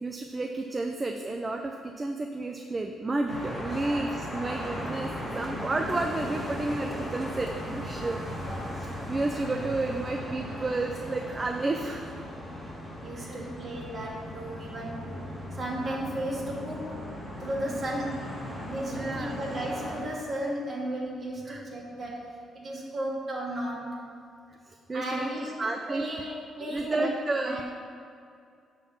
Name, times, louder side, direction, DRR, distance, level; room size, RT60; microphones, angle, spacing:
voice 1, 0.0-8.2 8.8-12.0 13.1-13.4 18.9-19.4 21.5-21.7 24.7-25.3 25.6-26.3 26.6-27.6, right 2 dB, 25° right, 4 dB, 0.6 m, -31 dB
sound 1, 3.3-20.0, equal, ahead, 2.6 m, -37 dB
voice 2, 3.7-4.1 7.9-8.3 13.0-15.2 15.6-17.0 17.4-18.3 18.7-24.0 24.9-27.1 27.4-27.6, right 1 dB, 45° right, -3 dB, 2.4 m, -35 dB
9.6 x 4.5 x 7.3 m, 2.3 s
cardioid pair, 90°, 0 cm